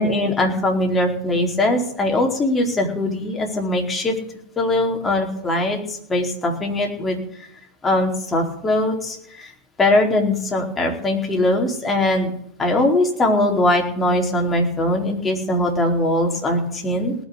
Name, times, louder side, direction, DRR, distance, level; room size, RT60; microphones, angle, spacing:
voice 1, 0.0-4.1 4.6-7.5 7.8-9.5 9.8-12.3 12.6-17.2, left 1 dB, 20° left, 1 dB, 4.5 m, -21 dB
19.0 x 6.6 x 8.7 m, 0.68 s
hypercardioid pair, 100°, 0 cm